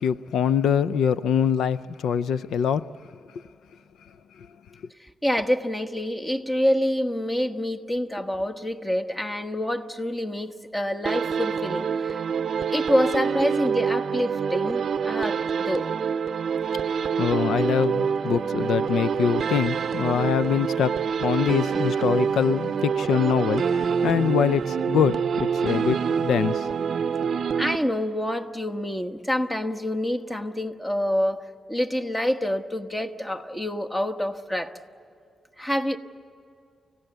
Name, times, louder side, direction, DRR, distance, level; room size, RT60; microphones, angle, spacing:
voice 1, 0.0-2.8 17.2-20.9 21.2-26.7, left 8 dB, 85° left, 15 dB, 0.4 m, -24 dB
voice 2, 5.2-12.2 12.7-15.9 27.6-31.4 31.7-34.7 35.6-36.0, equal, 15° left, 7 dB, 1.2 m, -27 dB
sound 1, 11.1-28.3, right 6 dB, 60° right, 0.6 m, -26 dB
30.0 x 15.5 x 8.0 m, 2.5 s
cardioid pair, 95°, 0 cm